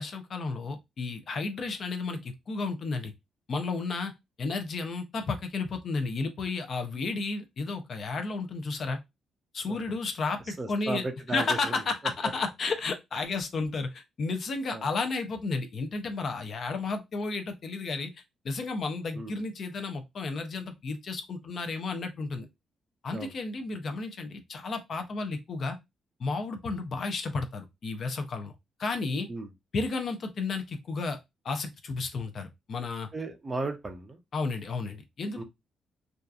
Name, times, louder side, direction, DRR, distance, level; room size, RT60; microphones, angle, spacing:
voice 1, 0.0-3.1 3.5-9.0 9.5-18.1 18.4-22.5 23.0-25.8 26.2-28.5 28.8-29.3 29.7-31.2 31.4-33.1 34.3-35.4, left 3 dB, 45° left, 0.5 m, -32 dB
voice 2, 10.5-11.8 14.7-14.9 19.1-19.4 23.1-23.3 29.3-29.5 33.1-34.2 35.3-35.4, right 3 dB, 25° right, 0.5 m, -35 dB
2.7 x 2.4 x 2.3 m
cardioid pair, 140°, 0 cm